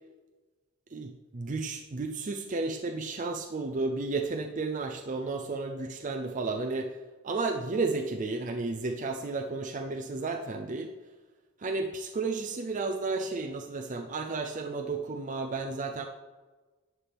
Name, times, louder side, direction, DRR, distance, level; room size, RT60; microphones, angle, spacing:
voice 1, 0.9-6.9 7.2-10.9 11.6-16.1, right 3 dB, 40° right, 3 dB, 0.5 m, -32 dB
11.0 x 7.5 x 3.5 m, 1.3 s
head